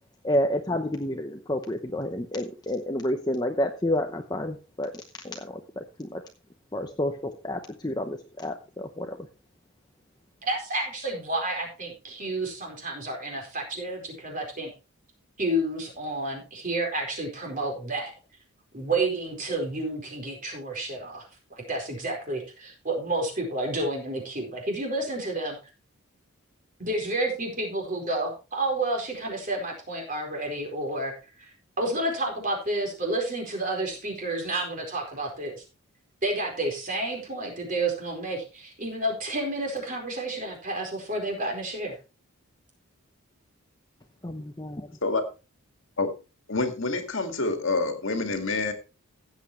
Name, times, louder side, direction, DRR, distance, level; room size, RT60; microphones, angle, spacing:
voice 1, 0.2-5.5 5.8-6.2 6.7-9.2 44.2-44.7, left 1 dB, 20° left, 5 dB, 0.8 m, -29 dB
voice 2, 10.4-14.7 15.4-18.1 18.7-25.6 26.8-31.1 31.4-35.6 36.2-42.0, right 2 dB, 35° right, 1 dB, 4.5 m, -30 dB
voice 3, 46.5-48.7, left 3 dB, 60° left, 5 dB, 2.0 m, -27 dB
16.0 x 8.2 x 3.1 m, 0.30 s
head